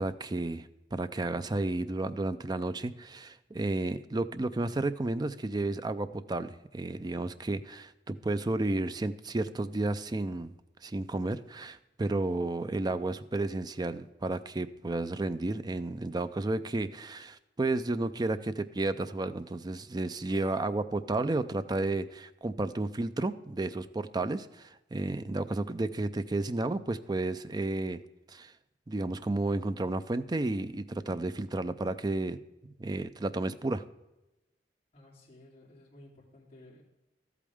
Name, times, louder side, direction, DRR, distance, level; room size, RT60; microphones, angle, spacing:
voice 1, 0.0-10.5 10.8-28.0 28.3-28.5 28.9-32.4 32.6-33.8, right 2 dB, 25° right, 12 dB, 0.4 m, -32 dB
voice 2, 34.9-36.8, left 1 dB, 35° left, -6 dB, 2.8 m, -55 dB
13.0 x 8.4 x 3.6 m, 0.99 s
head